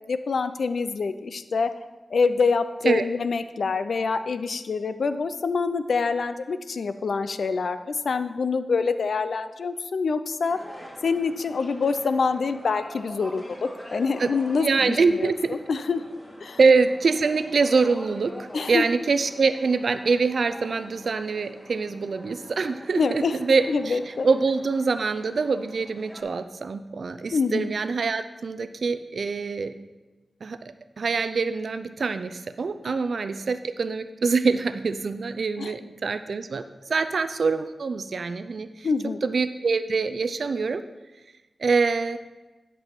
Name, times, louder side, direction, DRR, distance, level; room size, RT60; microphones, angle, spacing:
voice 1, 0.0-1.7 2.1-10.6 11.0-16.0 16.4-16.6 18.5-18.8 23.0-23.4 23.7-24.3 27.3-27.7 32.8-32.9 35.6-35.8 38.8-39.2, left 4 dB, 80° left, 11 dB, 0.5 m, -26 dB
sound 1, 10.5-26.2, equal, 10° left, 2.3 m, -44 dB
voice 2, 14.6-15.6 16.6-29.7 30.4-30.6 31.0-36.6 36.9-38.9 39.2-40.8 41.6-42.2, right 4 dB, 75° right, 11 dB, 0.4 m, -24 dB
11.0 x 5.4 x 4.4 m, 1.1 s
cardioid pair, 50°, 0 cm